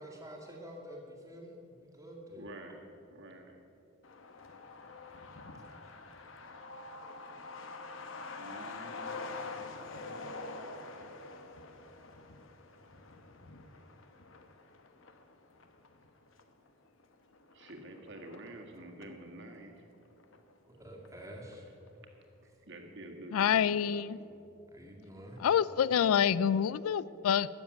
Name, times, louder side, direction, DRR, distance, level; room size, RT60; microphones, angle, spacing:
voice 1, 0.0-2.5 20.7-21.7 24.7-25.4, equal, 15° right, -1 dB, 2.0 m, -48 dB
voice 2, 2.4-3.6 8.4-9.4 17.5-19.7 22.7-24.4, right 1 dB, 55° right, 2 dB, 1.7 m, -48 dB
Truck, 4.0-19.2 19.5-19.6 19.9-20.8 21.1-21.2 21.5-21.9, left 3 dB, 60° left, 1.0 m, -46 dB
voice 3, 23.3-24.2 25.4-27.5, left 8 dB, 75° left, 19 dB, 0.3 m, -27 dB
13.0 x 7.2 x 9.6 m, 2.8 s
head